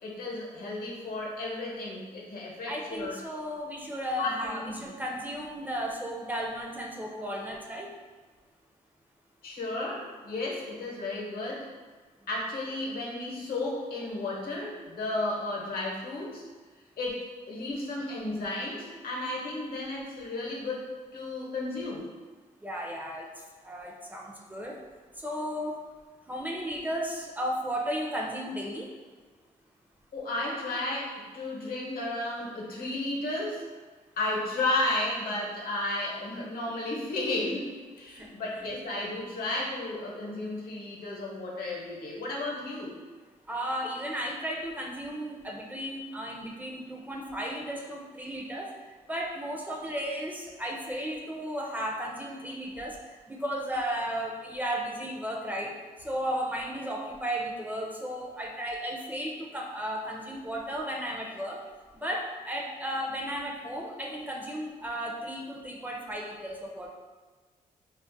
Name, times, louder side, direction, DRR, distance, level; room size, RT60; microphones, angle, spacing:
voice 1, 0.0-3.1 4.2-4.9 9.4-11.7 12.3-16.4 17.0-20.9 21.1-22.1 30.1-33.6 34.2-43.0, left 2 dB, 80° left, -3 dB, 0.8 m, -33 dB
voice 2, 2.7-7.9 22.6-24.8 25.2-25.8 26.3-28.9 38.1-38.4 43.5-55.7 56.0-61.6 61.9-66.9, equal, 10° right, -1 dB, 0.4 m, -34 dB
2.3 x 2.1 x 3.8 m, 1.4 s
cardioid pair, 95°, 15 cm